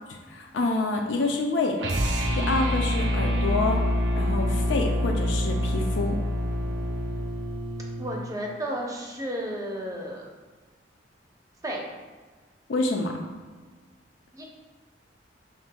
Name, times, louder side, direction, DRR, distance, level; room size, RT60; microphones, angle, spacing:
voice 1, 0.3-1.8 2.3-3.8 4.2-6.2 12.7-13.2, left 3 dB, 85° left, 1 dB, 0.4 m, -27 dB
sound 1, 1.8-8.2, equal, 70° right, 0.5 m, -26 dB
voice 2, 8.0-10.3 11.6-11.8 14.3-14.4, right 1 dB, 20° right, -1 dB, 0.6 m, -32 dB
5.7 x 3.4 x 2.2 m, 1.4 s
head